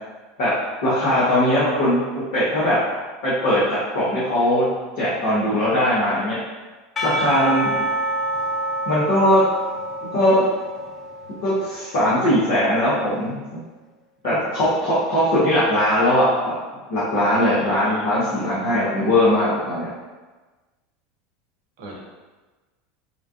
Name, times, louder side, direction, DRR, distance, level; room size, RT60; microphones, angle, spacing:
voice 1, 0.8-2.0 2.3-2.8 3.2-3.6 3.9-4.7 5.0-6.4 7.0-7.8 8.9-9.4 10.1-10.4 11.4-13.4 14.2-16.5 16.9-19.9, left 1 dB, 65° left, -10 dB, 0.9 m, -20 dB
Percussion / Church bell, 7.0-12.0, right 1 dB, 25° left, 0.6 m, -27 dB
voice 2, 17.4-18.1 21.8-22.0, right 2 dB, 65° right, -1 dB, 0.6 m, -34 dB
3.0 x 2.2 x 2.5 m, 1.3 s
hypercardioid pair, 80°, 0 cm